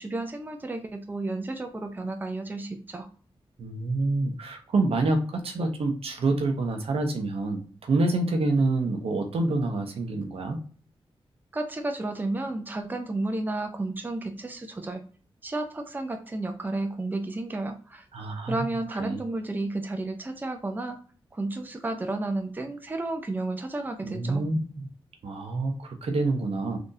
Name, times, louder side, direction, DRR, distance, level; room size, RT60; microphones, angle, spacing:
voice 1, 0.0-3.1 11.5-15.0 15.4-18.0 18.5-21.0 21.3-24.5, right 2 dB, 20° right, 5 dB, 0.5 m, -32 dB
voice 2, 3.6-10.6 18.1-18.5 19.0-19.2 24.0-24.9 25.2-26.8, right 2 dB, 75° right, 4 dB, 0.7 m, -27 dB
3.8 x 2.8 x 2.6 m, 0.42 s
wide cardioid pair, 85°, 10 cm